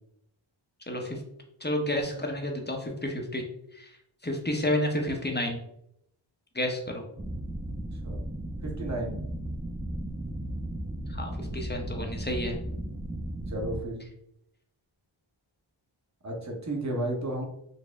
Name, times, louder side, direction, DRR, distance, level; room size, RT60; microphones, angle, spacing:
voice 1, 0.9-1.2 1.6-3.5 3.7-4.0 4.2-5.6 6.5-7.0 11.1-12.6, left 1 dB, 20° left, 2 dB, 0.7 m, -30 dB
sound 1, 7.2-13.8, right 1 dB, 15° right, 0.3 m, -35 dB
voice 2, 8.6-9.2 13.5-14.0 16.2-17.4, right 1 dB, 35° right, 0 dB, 0.9 m, -33 dB
4.2 x 2.0 x 3.4 m, 0.75 s
wide cardioid pair, 45°, 49 cm